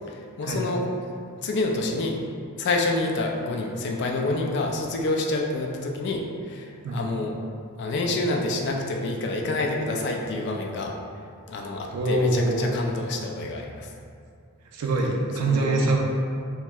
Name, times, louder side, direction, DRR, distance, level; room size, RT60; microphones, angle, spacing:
voice 1, 0.1-0.8 1.4-2.2 2.6-7.3 7.8-10.9 11.5-13.9 15.3-15.9, left 2 dB, 50° left, 1 dB, 0.3 m, -28 dB
voice 2, 11.9-12.7 14.7-16.0, right 2 dB, 80° right, 0 dB, 0.4 m, -24 dB
4.3 x 2.0 x 2.3 m, 2.4 s
head